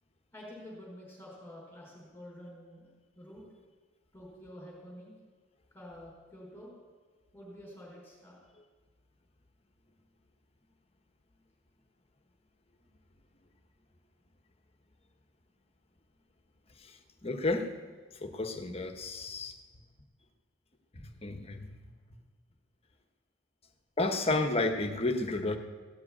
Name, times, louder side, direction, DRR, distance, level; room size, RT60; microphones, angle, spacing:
voice 1, 0.3-2.9 3.1-3.4 4.1-5.2 5.7-6.7 7.3-8.4, equal, 10° left, -5 dB, 4.9 m, -48 dB
voice 2, 17.2-17.7 18.2-19.5 20.9-21.7 24.0-25.6, left 2 dB, 30° left, 6 dB, 1.0 m, -31 dB
15.5 x 7.8 x 8.7 m, 1.4 s
head